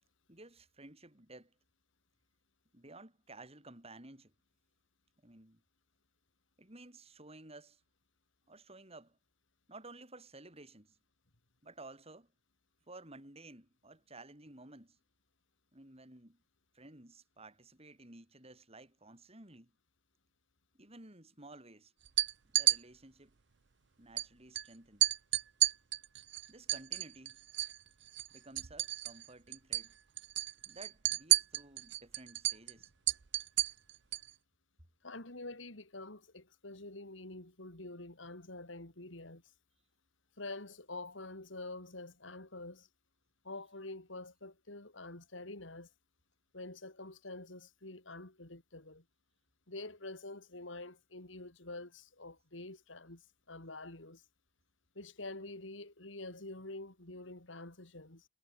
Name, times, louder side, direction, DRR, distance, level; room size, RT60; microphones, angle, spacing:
voice 1, 0.3-1.5 2.7-4.3 5.2-5.6 6.6-7.8 8.5-9.2 9.7-11.0 11.6-12.3 12.9-15.0 15.7-16.4 16.7-19.7 20.7-21.9 22.5-23.3 24.0-25.0 26.5-27.4 28.3-29.9 30.7-32.9, right 2 dB, 30° right, 5.8 m, -54 dB
sound 1, 22.0-22.8 24.2-24.3 24.5-24.7 25.0-27.8 28.1-29.3 29.5-29.9 30.2-34.3, right 15 dB, 65° right, 0.7 m, -31 dB
voice 2, 35.0-39.4 40.4-42.9 43.4-45.9 46.5-49.0 49.7-54.2 55.0-58.3, left 2 dB, 75° left, 3.6 m, -47 dB
head